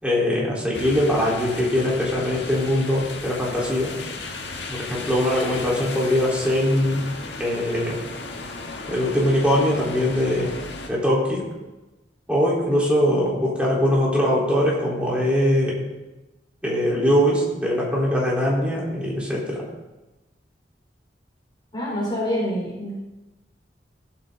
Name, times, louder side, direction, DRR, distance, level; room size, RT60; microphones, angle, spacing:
voice 1, 0.0-3.9 4.7-7.0 7.4-8.0 8.9-10.5 10.9-11.4 12.3-15.8 16.6-19.7, equal, 5° right, -5 dB, 3.9 m, -22 dB
sound 1, 0.7-10.9, left 3 dB, 75° left, 1.7 m, -35 dB
voice 2, 21.7-23.0, equal, 25° left, -5 dB, 4.0 m, -26 dB
18.0 x 8.6 x 3.9 m, 1.1 s
head